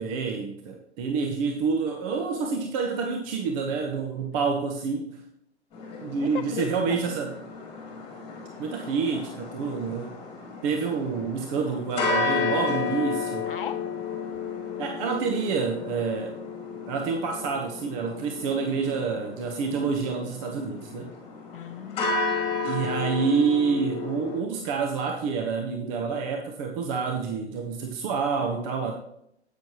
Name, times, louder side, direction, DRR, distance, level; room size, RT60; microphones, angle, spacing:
voice 1, 0.0-5.2 6.0-7.4 8.6-10.2 10.6-13.5 14.8-16.4 16.9-21.1 22.6-28.9, right 5 dB, 30° right, 3 dB, 1.0 m, -28 dB
sound 1, 5.7-24.4, left 4 dB, 15° left, 2.7 m, -33 dB
voice 2, 6.2-7.1 13.4-13.9 14.3-14.4 21.5-22.8, left 10 dB, 55° left, 10 dB, 0.4 m, -37 dB
10.0 x 8.5 x 2.9 m, 0.74 s
figure-of-eight pair, 115°, 34 cm